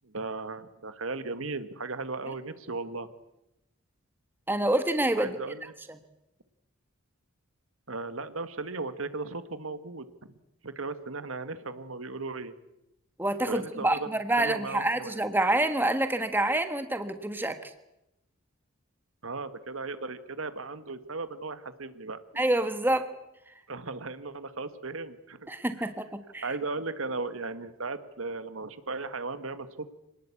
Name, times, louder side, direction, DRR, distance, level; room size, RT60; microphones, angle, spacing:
voice 1, 0.0-3.1 5.2-5.6 7.9-10.3 10.6-12.5 13.5-14.1 14.4-15.2 19.2-22.2 23.7-25.5 25.8-25.9 26.4-29.9, right 3 dB, 75° right, 11 dB, 1.6 m, -36 dB
voice 2, 4.5-5.4 13.2-17.7 22.4-23.1 23.5-23.6 25.5-26.5, right 1 dB, 10° right, 8 dB, 1.4 m, -27 dB
26.5 x 19.0 x 8.4 m, 0.89 s
head